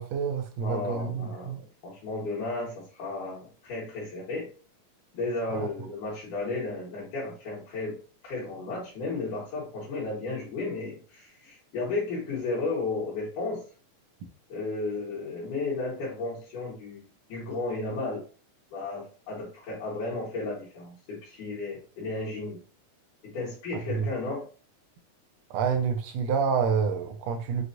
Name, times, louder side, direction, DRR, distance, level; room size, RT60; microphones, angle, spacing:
voice 1, 0.0-1.6 5.6-5.7 23.9-24.1 25.5-27.6, right 6 dB, 80° right, 4 dB, 1.5 m, -28 dB
voice 2, 0.6-4.5 5.1-8.0 8.2-13.6 14.5-17.0 17.3-18.2 18.7-22.6 23.2-24.4, left 3 dB, 75° left, -6 dB, 2.7 m, -33 dB
6.1 x 2.3 x 2.6 m, 0.38 s
omnidirectional pair, 3.6 m